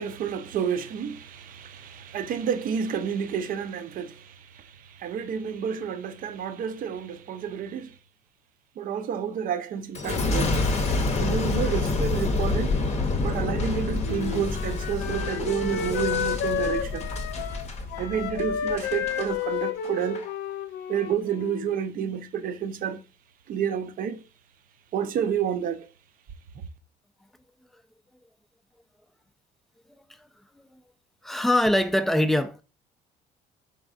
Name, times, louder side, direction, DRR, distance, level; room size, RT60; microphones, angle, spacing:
voice 1, 0.0-7.9 8.8-10.6 11.2-12.8 13.2-17.1 18.0-20.2 20.9-23.0 23.5-24.2 24.9-25.9, right 8 dB, 55° right, 0.5 m, -30 dB
Boom, 9.9-19.3 19.8-20.3, left 3 dB, 40° left, 0.7 m, -28 dB
Wind instrument woodwind instrument, 14.0-21.8, left 7 dB, 80° left, 0.4 m, -31 dB
voice 2, 31.2-32.6, left 1 dB, ahead, 0.3 m, -23 dB
4.3 x 3.5 x 2.4 m
cardioid pair, 110°, 17 cm